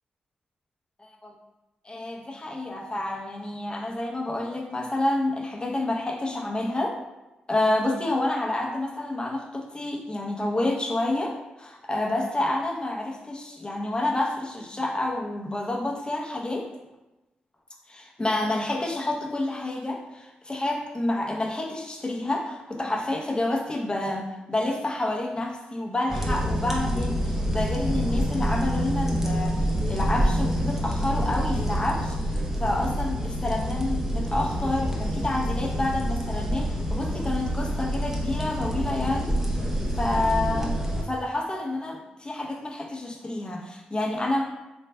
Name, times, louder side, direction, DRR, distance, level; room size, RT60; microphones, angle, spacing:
voice 1, 1.8-7.0 7.5-16.7 17.9-44.4, left 2 dB, 25° left, 0 dB, 0.7 m, -29 dB
sound 1, 26.1-41.0, equal, 15° right, 0.7 m, -27 dB
3.4 x 3.1 x 2.2 m, 1.0 s
supercardioid pair, 45°, 3 cm